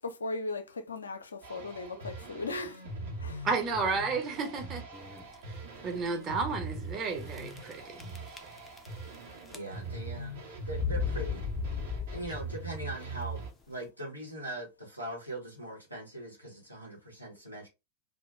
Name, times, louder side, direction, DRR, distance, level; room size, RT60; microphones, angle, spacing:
voice 1, 0.0-2.9 3.2-3.5, left 3 dB, 75° left, 0.4 m, -37 dB
sound 1, 1.4-13.5, right 3 dB, 60° right, 0.8 m, -42 dB
voice 2, 3.4-4.8 5.8-8.4, right 4 dB, 30° right, 0.7 m, -32 dB
sound 2, 4.9-5.3 6.0-6.1 6.3-6.4 7.3-7.7 8.0-9.1 9.4-10.0 10.7-12.6, left 7 dB, 10° left, 0.4 m, -35 dB
voice 3, 9.5-10.4 10.7-11.5 12.1-17.7, right 1 dB, 85° right, 0.9 m, -41 dB
2.3 x 2.1 x 3.0 m
figure-of-eight pair, 90°, 0 cm